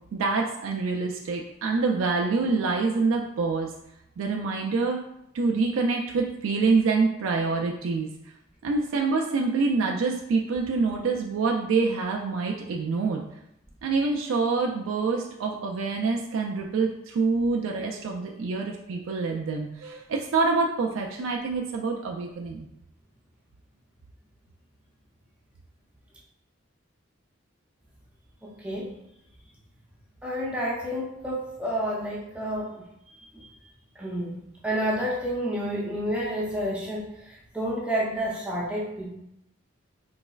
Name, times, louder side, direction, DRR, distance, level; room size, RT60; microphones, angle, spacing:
voice 1, 0.1-3.7 4.2-5.0 5.3-8.1 8.6-13.2 13.8-22.7, right 4 dB, 85° right, 0 dB, 0.4 m, -26 dB
voice 2, 28.4-28.9 30.2-32.9 33.3-33.5 34.0-39.1, equal, 5° right, -5 dB, 0.4 m, -30 dB
4.0 x 3.0 x 2.3 m, 0.80 s
head